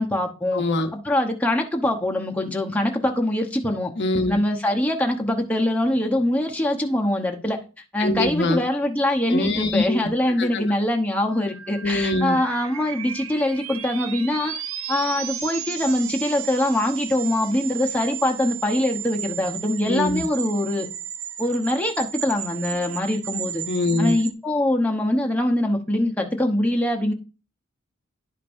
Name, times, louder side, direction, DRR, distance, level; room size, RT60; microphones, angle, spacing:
voice 1, 0.0-0.6 0.9-3.9 4.3-7.6 7.9-14.5 14.9-20.9 21.4-23.6 24.0-27.1, left 1 dB, 5° left, 0.9 m, -23 dB
voice 2, 0.5-0.9 4.0-4.4 8.0-8.6 9.3-10.0 10.4-10.7 11.8-12.4 19.8-20.2 23.7-24.2, left 2 dB, 55° left, 0.8 m, -23 dB
sound 1, 11.3-24.3, right 10 dB, 75° right, 0.6 m, -34 dB
11.0 x 5.2 x 2.6 m
head